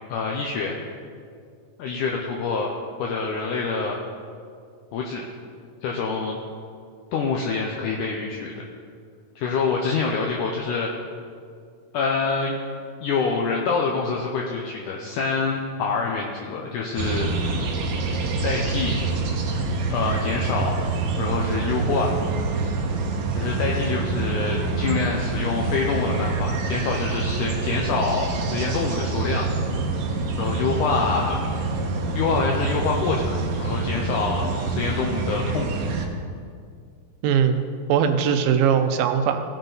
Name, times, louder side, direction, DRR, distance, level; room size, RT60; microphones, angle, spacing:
voice 1, 0.1-0.8 1.8-2.7 3.0-4.0 4.9-5.3 5.8-6.4 7.1-8.5 9.4-10.9 11.9-12.6 13.0-17.3 18.4-19.0 19.9-20.8 21.2-22.1 23.4-29.5 30.4-31.4 32.1-35.7, left 4 dB, 75° left, -1 dB, 2.0 m, -26 dB
sound 1, 17.0-36.1, right 3 dB, 65° right, 1.9 m, -26 dB
voice 2, 37.2-39.4, right 7 dB, 85° right, 8 dB, 2.5 m, -20 dB
17.5 x 6.6 x 4.0 m, 2.2 s
omnidirectional pair, 4.2 m